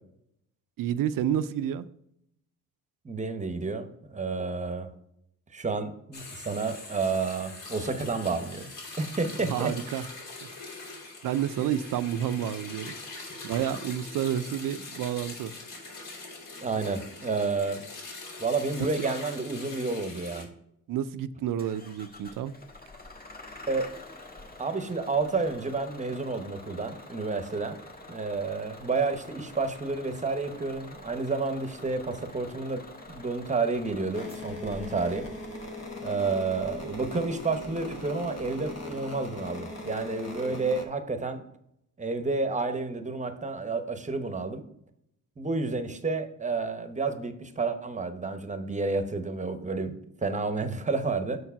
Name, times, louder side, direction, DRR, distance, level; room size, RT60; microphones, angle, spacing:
voice 1, 0.8-1.9 9.5-10.0 11.2-12.9 13.4-15.5 20.9-22.5, right 10 dB, 70° right, 0.5 m, -29 dB
voice 2, 3.0-4.9 5.5-8.7 9.0-10.0 16.6-17.8 18.4-20.5 23.7-23.9 24.6-27.8 28.1-32.8 33.1-35.3 36.0-41.4 42.0-44.6 45.4-49.9 50.2-51.4, right 3 dB, 20° right, 0.8 m, -30 dB
sound 1, 6.1-20.4, left 3 dB, 75° left, 3.1 m, -43 dB
Bus / Engine starting, 21.6-37.8, left 2 dB, 25° left, 1.5 m, -47 dB
sound 2, 34.1-40.9, left 2 dB, 50° left, 1.2 m, -39 dB
6.6 x 4.6 x 5.6 m
cardioid pair, 105°, 34 cm